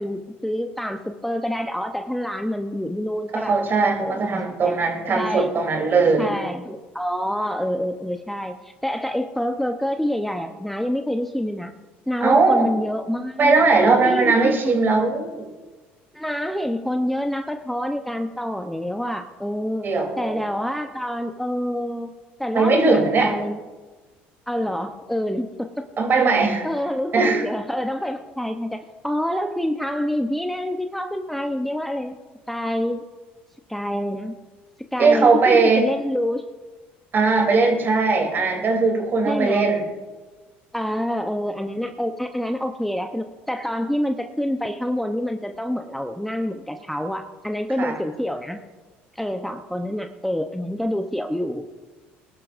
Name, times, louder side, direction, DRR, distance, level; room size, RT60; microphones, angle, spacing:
voice 1, 0.0-3.5 4.0-4.8 5.1-5.5 5.8-5.9 6.2-11.7 12.1-13.6 14.0-14.8 16.1-19.9 20.2-22.1 22.4-23.6 24.5-25.9 26.3-32.2 32.5-33.0 33.7-34.3 34.9-36.4 39.2-39.7 40.7-48.6 49.1-51.6, equal, 5° left, 6 dB, 0.8 m, -27 dB
voice 2, 3.3-6.3 12.2-12.7 13.4-15.4 19.8-20.4 22.5-23.3 26.0-26.7 27.1-27.4 35.0-35.9 37.1-39.8 47.8-47.9, right 4 dB, 40° right, 2 dB, 3.3 m, -19 dB
22.5 x 12.0 x 2.6 m, 1.3 s
hypercardioid pair, 75°, 5 cm